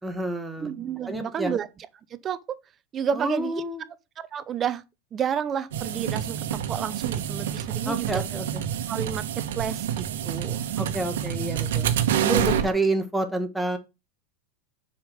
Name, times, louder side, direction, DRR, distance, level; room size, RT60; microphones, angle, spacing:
voice 1, 0.0-0.7 1.1-1.5 3.2-3.8 7.9-8.6 10.8-11.9 12.2-13.8, right 2 dB, 5° right, 1.4 m, -28 dB
voice 2, 0.6-1.9 2.2-2.4 2.9-3.6 4.2-4.8 5.1-8.2 8.9-10.7, right 8 dB, 25° right, 0.7 m, -31 dB
sound 1, 5.7-12.7, right 10 dB, 85° right, 1.1 m, -27 dB
6.9 x 5.1 x 5.0 m
supercardioid pair, 140°, 0 cm